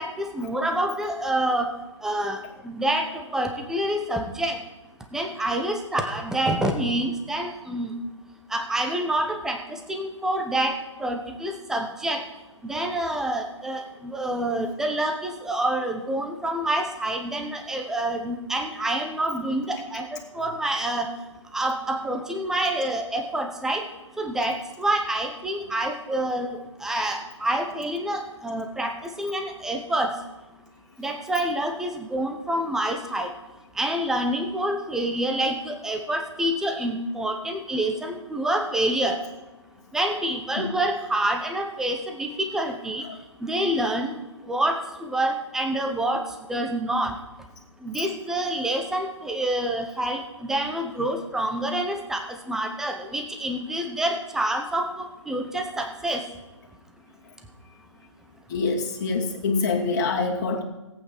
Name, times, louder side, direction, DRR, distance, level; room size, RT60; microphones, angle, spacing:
voice 1, 0.0-1.7 2.0-4.6 5.1-7.9 8.5-12.2 12.6-21.1 21.5-23.8 24.2-30.1 31.0-33.3 33.7-39.2 39.9-43.0 43.4-46.2 46.5-47.2 47.8-56.3, right 1 dB, 5° right, 3 dB, 1.1 m, -27 dB
voice 2, 58.5-60.6, left 4 dB, 35° left, -1 dB, 2.5 m, -25 dB
17.5 x 8.7 x 4.8 m, 1.1 s
figure-of-eight pair, 135°, 16 cm